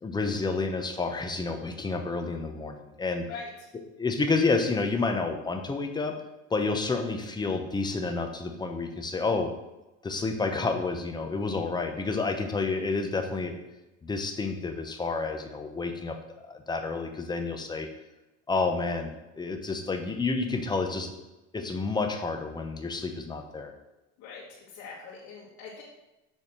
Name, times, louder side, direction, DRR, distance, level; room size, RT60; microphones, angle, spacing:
voice 1, 0.0-3.2 4.0-6.1 6.5-9.5 10.0-13.6 14.0-17.9 18.5-21.1 21.5-23.7, left 3 dB, 15° left, 5 dB, 0.8 m, -29 dB
voice 2, 24.7-25.8, left 5 dB, 70° left, -7 dB, 1.8 m, -42 dB
6.8 x 3.5 x 6.0 m, 0.99 s
cardioid pair, 125°, 31 cm